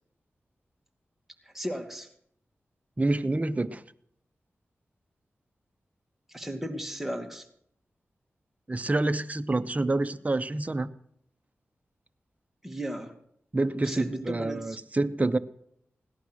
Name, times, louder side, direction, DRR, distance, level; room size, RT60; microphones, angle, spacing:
voice 1, 1.4-2.1 6.3-7.5 12.6-13.1 13.7-14.8, equal, 5° right, 4 dB, 2.5 m, -35 dB
voice 2, 3.0-3.8 8.7-10.9 13.5-15.4, right 2 dB, 30° right, 11 dB, 0.9 m, -27 dB
17.5 x 11.5 x 6.4 m, 0.70 s
cardioid pair, 45°, 5 cm